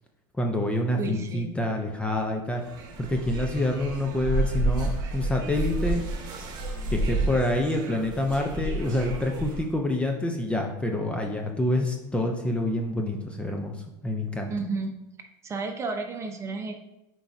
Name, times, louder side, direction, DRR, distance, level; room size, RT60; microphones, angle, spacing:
voice 1, 0.4-2.6 3.0-6.0 6.9-13.8 14.0-14.5, left 1 dB, 10° left, 2 dB, 0.8 m, -27 dB
voice 2, 1.0-1.5 14.5-14.9 15.4-16.8, right 3 dB, 25° right, 3 dB, 1.1 m, -32 dB
sound 1, 2.5-9.7, right 2 dB, 40° right, 1.5 m, -30 dB
8.4 x 4.7 x 2.8 m, 0.89 s
supercardioid pair, 110°, 11 cm